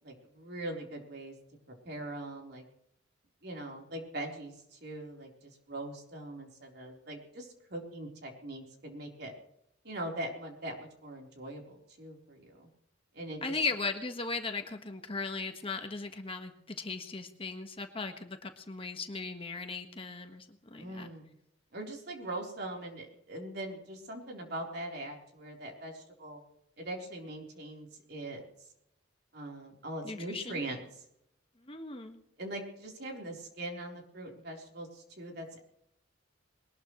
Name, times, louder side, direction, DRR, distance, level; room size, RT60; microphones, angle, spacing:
voice 1, 0.0-1.4 1.8-2.6 3.4-9.3 9.8-12.7 13.1-13.6 20.8-21.3 21.7-26.4 26.8-28.4 29.3-31.1 32.4-35.6, right 1 dB, 55° right, 1 dB, 3.9 m, -41 dB
voice 2, 13.4-21.1 30.0-30.6 31.7-32.2, left 4 dB, 30° left, 5 dB, 1.5 m, -37 dB
21.5 x 19.5 x 3.2 m, 0.76 s
head